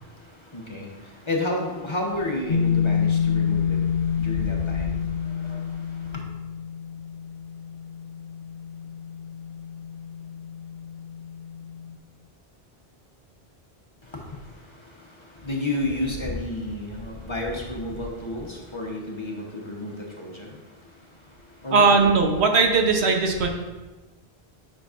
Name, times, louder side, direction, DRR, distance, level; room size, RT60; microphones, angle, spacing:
voice 1, 0.5-3.8 4.1-5.0 5.4-5.6 15.4-20.5 21.6-22.1, left 2 dB, 30° left, -1 dB, 0.9 m, -30 dB
sound 1, 2.5-11.9, left 7 dB, 65° left, 1.1 m, -28 dB
voice 2, 21.7-23.5, right 4 dB, 85° right, 3 dB, 1.1 m, -19 dB
9.8 x 5.8 x 2.5 m, 1.2 s
omnidirectional pair, 1.1 m